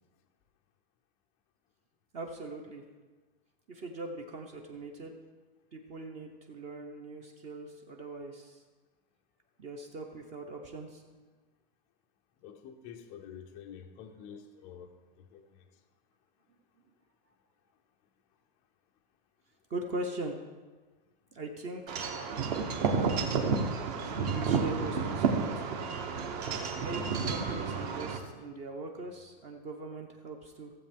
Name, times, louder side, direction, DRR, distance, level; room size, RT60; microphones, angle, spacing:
voice 1, 2.1-2.8 3.7-5.2 5.7-8.6 9.6-11.0 19.7-20.4 21.3-22.2 24.0-25.7 26.7-30.7, right 2 dB, 25° right, 4 dB, 0.7 m, -41 dB
voice 2, 12.4-14.9 15.3-15.6, left 8 dB, 20° left, 1 dB, 0.5 m, -48 dB
Wind chime / Wind, 21.9-28.2, right 5 dB, 40° right, 1.2 m, -31 dB
15.5 x 7.6 x 3.6 m, 1.3 s
supercardioid pair, 160°, 30 cm